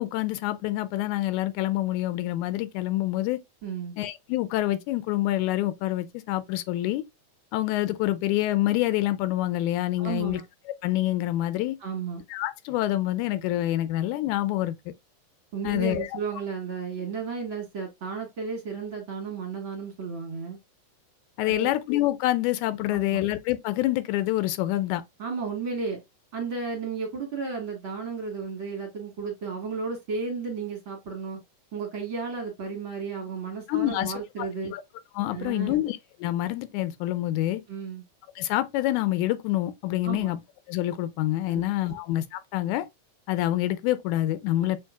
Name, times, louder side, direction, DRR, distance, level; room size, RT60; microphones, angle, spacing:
voice 1, 0.0-3.4 4.0-7.0 7.5-10.4 10.8-11.8 12.3-14.9 15.6-16.1 21.4-25.0 33.7-34.1 34.7-34.8 35.2-37.6 38.4-40.4 40.7-42.9 43.3-44.8, left 15 dB, 85° left, 1.9 m, -26 dB
voice 2, 3.6-4.0 10.0-10.4 11.8-12.2 15.5-20.6 21.4-21.7 22.8-23.2 25.2-26.0 26.3-31.4 31.7-34.7 35.3-35.8 37.7-38.0 40.0-40.3 41.5-42.0 44.6-44.8, right 5 dB, 50° right, 1.9 m, -33 dB
6.4 x 3.0 x 2.3 m
omnidirectional pair, 3.4 m